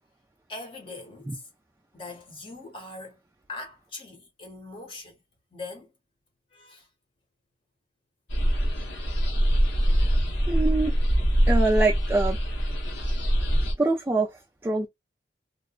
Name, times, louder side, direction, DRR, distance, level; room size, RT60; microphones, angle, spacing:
voice 1, 0.5-1.5 1.9-3.2 3.5-5.1 5.5-5.9 6.5-6.9 11.2-11.3, left 2 dB, 30° left, 0.9 m, -41 dB
sound 1, 8.3-13.7, equal, 80° left, 1.0 m, -23 dB
voice 2, 10.5-10.9 11.5-12.4 13.8-14.3 14.6-14.9, right 2 dB, 15° right, 0.3 m, -24 dB
2.9 x 2.1 x 2.3 m
head